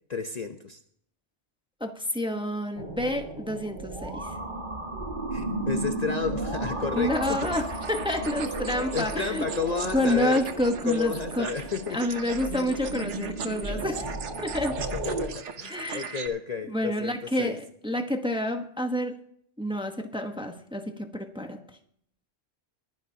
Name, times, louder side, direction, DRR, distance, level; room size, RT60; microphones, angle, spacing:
voice 1, 0.1-0.8 5.3-7.5 8.6-10.4 10.8-12.1 14.9-17.6, left 5 dB, 40° left, 6 dB, 0.8 m, -32 dB
voice 2, 1.8-4.3 6.9-9.4 9.9-11.5 11.9-14.8 15.7-16.2 16.7-19.2 19.6-21.6, left 1 dB, 5° right, 5 dB, 1.0 m, -29 dB
sound 1, 2.8-15.3, right 2 dB, 45° right, 2.2 m, -34 dB
sound 2, 7.1-16.3, right 6 dB, 80° right, 1.3 m, -40 dB
22.0 x 10.5 x 2.8 m, 0.66 s
omnidirectional pair, 1.2 m